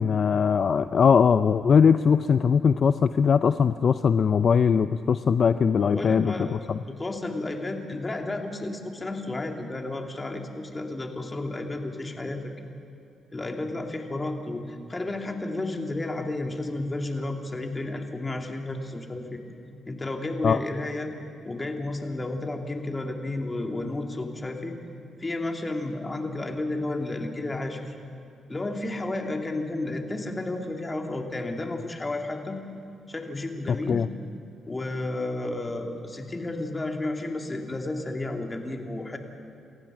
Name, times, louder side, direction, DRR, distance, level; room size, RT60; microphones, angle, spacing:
voice 1, 0.0-6.8 20.4-20.6 33.7-34.1, left 6 dB, 55° left, 12 dB, 0.5 m, -21 dB
voice 2, 5.8-12.5 13.3-19.4 19.9-21.1 21.4-24.7 25.2-27.9 28.5-32.6 33.1-34.0 34.7-39.2, left 2 dB, 25° left, 3 dB, 2.5 m, -32 dB
28.0 x 15.0 x 6.2 m, 2.8 s
cardioid pair, 80°, 0 cm